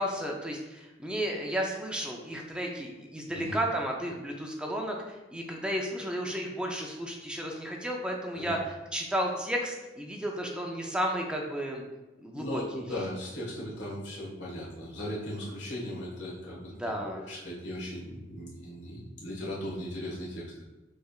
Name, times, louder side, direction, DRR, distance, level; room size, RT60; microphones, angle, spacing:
voice 1, 0.0-11.8 12.2-12.6 16.7-17.2, equal, 5° right, 0 dB, 0.5 m, -33 dB
voice 2, 12.3-16.7 17.0-20.6, left 1 dB, 70° left, -5 dB, 1.5 m, -38 dB
6.5 x 3.3 x 2.4 m, 1.1 s
head